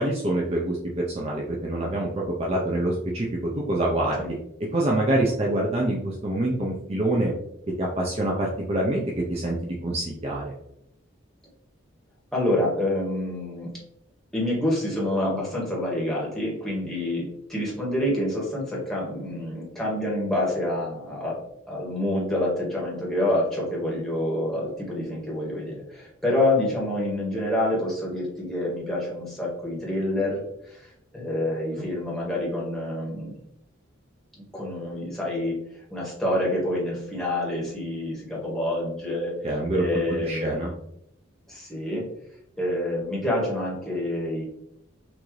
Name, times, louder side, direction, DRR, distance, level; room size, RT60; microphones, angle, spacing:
voice 1, 0.0-2.1 2.4-4.2 4.7-7.3 7.8-10.5 31.8-31.9 39.4-39.8 40.1-40.7, right 1 dB, 30° right, -3 dB, 0.6 m, -26 dB
voice 2, 12.3-13.7 14.3-21.4 21.7-33.3 34.5-39.4 39.7-40.5 41.5-42.1 42.6-44.4, left 1 dB, ahead, -6 dB, 1.5 m, -27 dB
6.0 x 2.7 x 3.2 m, 0.77 s
head